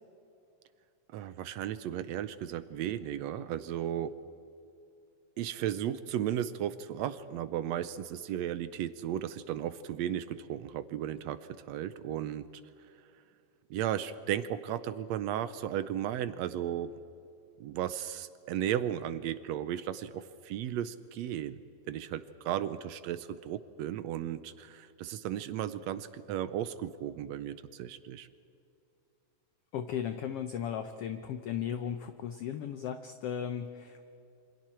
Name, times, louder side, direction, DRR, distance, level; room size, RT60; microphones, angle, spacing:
voice 1, 1.1-4.1 5.4-12.5 13.7-16.9 17.6-21.6 21.9-28.3, right 11 dB, 75° right, 13 dB, 1.7 m, -35 dB
voice 2, 29.7-34.0, left 8 dB, 70° left, 8 dB, 1.5 m, -36 dB
27.5 x 25.5 x 4.4 m, 2.7 s
omnidirectional pair, 3.4 m